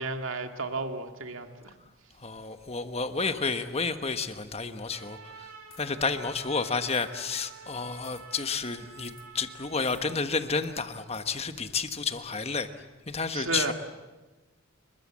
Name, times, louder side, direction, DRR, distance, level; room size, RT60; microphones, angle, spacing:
voice 1, 0.0-1.7 13.3-13.7, right 3 dB, 65° right, 6 dB, 2.2 m, -33 dB
voice 2, 2.2-5.5 5.8-12.7 13.1-13.7, left 4 dB, 30° left, 9 dB, 1.3 m, -31 dB
Trumpet, 4.9-10.2, right 5 dB, 90° right, 5.3 m, -49 dB
sound 1, 5.7-6.0 6.9-7.1 8.0-8.2 9.0-9.3 9.8-10.0 11.1-11.3, left 11 dB, 60° left, 3.7 m, -53 dB
29.5 x 22.0 x 7.6 m, 1.2 s
head